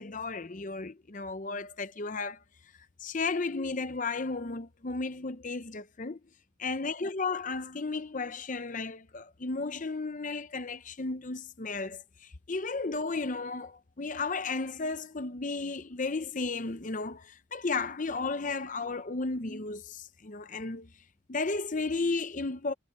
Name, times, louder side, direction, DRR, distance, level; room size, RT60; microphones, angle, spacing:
voice 1, 0.0-2.4 3.0-6.2 6.6-20.9 21.3-22.7, left 3 dB, 35° left, 0.7 m, -34 dB
head